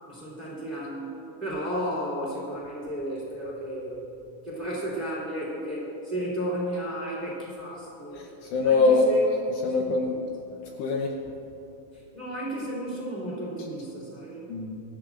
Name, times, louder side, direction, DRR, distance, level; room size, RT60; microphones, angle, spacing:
voice 1, 0.1-4.1 4.4-8.2 8.6-9.2 9.6-10.2 11.9-14.5, equal, 15° right, -5 dB, 2.4 m, -33 dB
voice 2, 8.2-9.1 9.6-10.2 10.8-11.1 14.5-14.8, left 3 dB, 75° left, 1 dB, 2.7 m, -23 dB
24.0 x 13.5 x 2.5 m, 2.9 s
omnidirectional pair, 5.5 m